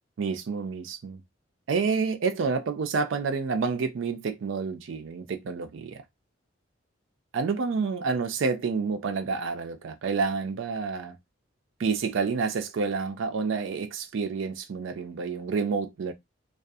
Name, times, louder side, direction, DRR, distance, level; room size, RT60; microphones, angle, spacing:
voice 1, 0.2-1.2 1.7-6.0 7.3-11.2 11.8-16.1, right 5 dB, 70° right, 0.4 m, -29 dB
2.6 x 2.3 x 2.3 m
head